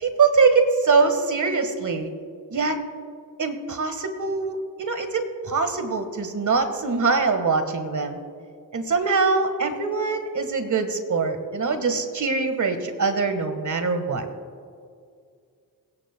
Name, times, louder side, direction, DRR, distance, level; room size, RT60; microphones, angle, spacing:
voice 1, 0.0-2.1 2.5-2.8 3.4-8.2 8.7-14.3, right 4 dB, 50° right, 7 dB, 1.6 m, -23 dB
28.5 x 9.9 x 2.3 m, 2.2 s
supercardioid pair, 55°, 40 cm